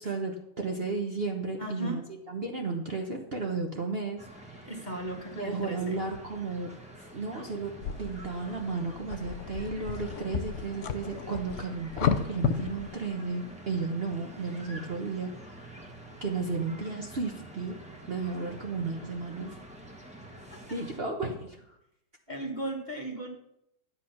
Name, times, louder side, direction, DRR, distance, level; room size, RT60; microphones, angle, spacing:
voice 1, 0.0-4.7 5.4-6.7 7.1-7.7 8.0-15.9 16.2-17.7 18.1-19.5 20.7-21.8, right 4 dB, 40° right, 1 dB, 1.3 m, -34 dB
voice 2, 1.6-2.0 4.6-6.0 19.5-19.6 20.5-20.6 22.3-23.3, right 1 dB, 25° left, 1 dB, 1.8 m, -36 dB
sound 1, 4.2-21.0, right 1 dB, 5° right, 1.5 m, -47 dB
sound 2, 7.8-13.0, left 8 dB, 55° left, 0.9 m, -33 dB
12.0 x 8.3 x 5.9 m, 0.79 s
omnidirectional pair, 1.9 m